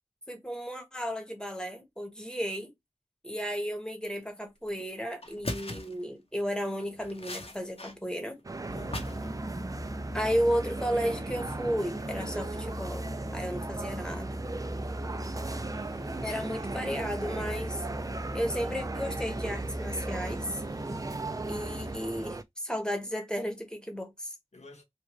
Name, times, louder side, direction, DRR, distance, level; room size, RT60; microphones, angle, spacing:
voice 1, 0.3-2.7 3.2-8.4 10.1-14.4 16.2-17.8 18.3-20.6 21.5-24.3, equal, 5° left, 1.1 m, -33 dB
sound 1, 4.7-4.8 5.2-6.0 6.6-7.9 8.2-9.3 9.6-9.9, left 2 dB, 55° left, 0.8 m, -39 dB
sound 2, 8.4-22.4, right 3 dB, 30° right, 0.3 m, -38 dB
voice 2, 8.6-9.9 15.2-15.9 24.5-24.8, left 1 dB, 75° left, 1.1 m, -52 dB
sound 3, 8.6-21.9, equal, 50° right, 1.0 m, -38 dB
3.1 x 2.2 x 3.0 m
wide cardioid pair, 40°, 12 cm